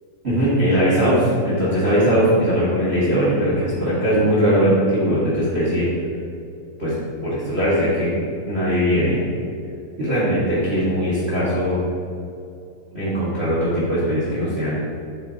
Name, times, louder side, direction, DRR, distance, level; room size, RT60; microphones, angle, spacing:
voice 1, 0.2-5.9 6.8-6.9 7.2-8.1 8.4-9.2 10.0-11.8 12.9-14.8, equal, 80° right, -10 dB, 0.5 m, -20 dB
8.4 x 7.4 x 2.8 m, 2.5 s
omnidirectional pair, 4.1 m